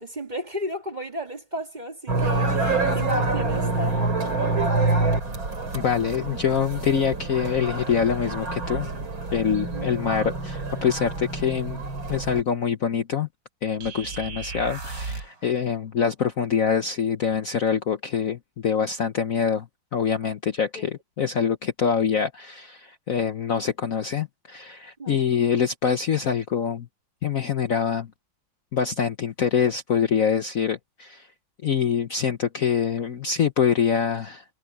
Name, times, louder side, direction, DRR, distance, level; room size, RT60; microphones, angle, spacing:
voice 1, 0.0-4.0 9.7-9.9 20.8-20.9 25.0-25.2, equal, 25° right, 2.0 m, -34 dB
sound 1, 2.1-12.4, right 3 dB, 90° right, 5.2 m, -26 dB
voice 2, 5.7-8.9 9.3-11.8 12.1-13.3 13.6-19.7 19.9-26.9 27.2-28.1 28.7-31.3 31.6-34.4, left 7 dB, 50° left, 1.2 m, -25 dB
sound 2, 13.8-15.4, right 4 dB, 65° right, 4.3 m, -35 dB
omnidirectional pair, 2.1 m